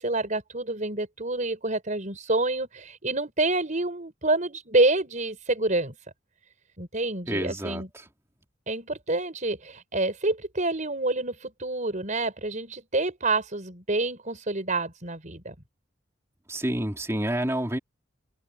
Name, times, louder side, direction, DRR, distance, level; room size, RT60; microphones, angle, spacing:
voice 1, 0.0-5.9 6.8-7.9 8.7-15.5, right 2 dB, 40° right, 5.2 m, -27 dB
voice 2, 7.3-8.0 16.5-17.8, right 1 dB, 15° right, 3.1 m, -29 dB
open air
head